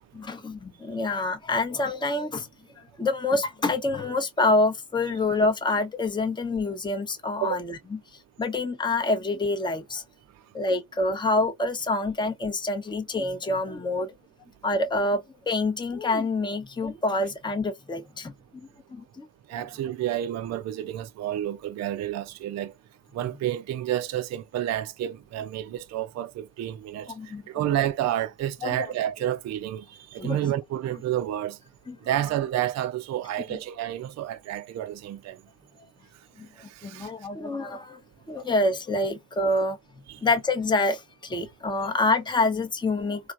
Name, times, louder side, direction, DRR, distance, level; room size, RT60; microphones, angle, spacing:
voice 1, 0.1-2.5 2.8-8.0 8.4-10.0 10.5-14.1 14.6-19.3 27.1-27.4 28.6-28.8 30.2-30.4 31.9-32.0 36.4-36.5 36.8-38.0 38.3-39.8 40.2-43.2, left 2 dB, 10° left, 0.7 m, -27 dB
voice 2, 19.5-22.7 23.1-27.1 27.5-31.6 32.0-35.4 36.8-37.1 40.1-40.2, right 12 dB, 40° right, 0.5 m, -30 dB
3.1 x 2.5 x 2.5 m
hypercardioid pair, 45°, 41 cm